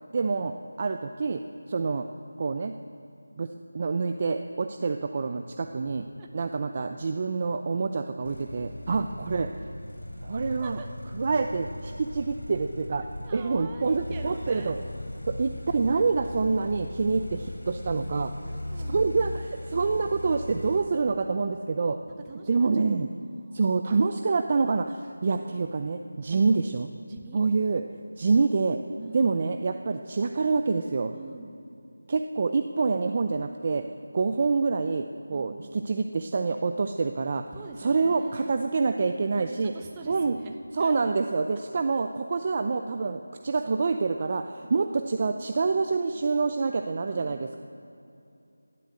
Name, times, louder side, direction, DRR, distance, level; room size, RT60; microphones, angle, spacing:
voice 1, 0.1-0.5 0.8-1.4 1.7-2.1 2.4-2.7 3.4-6.0 6.3-9.5 10.2-10.8 11.1-13.1 13.3-14.8 15.3-18.3 18.9-22.0 22.5-23.1 23.5-26.9 27.3-27.8 28.2-28.8 29.1-31.1 32.1-33.8 34.1-37.4 37.8-39.7 40.1-40.4 40.7-47.6, right 4 dB, 30° right, 7 dB, 0.6 m, -26 dB
voice 2, 5.9-6.3 8.9-9.0 10.6-10.9 13.2-14.8 18.4-19.3 22.0-23.7 27.1-27.4 29.0-29.3 31.1-31.7 35.3-35.8 37.5-38.9 39.3-40.9 47.1-47.6, right 4 dB, 15° right, 2 dB, 1.1 m, -45 dB
sound 1, 8.2-20.8, left 1 dB, 75° left, 3.4 m, -38 dB
16.0 x 12.0 x 7.8 m, 2.6 s
figure-of-eight pair, 170°, 0 cm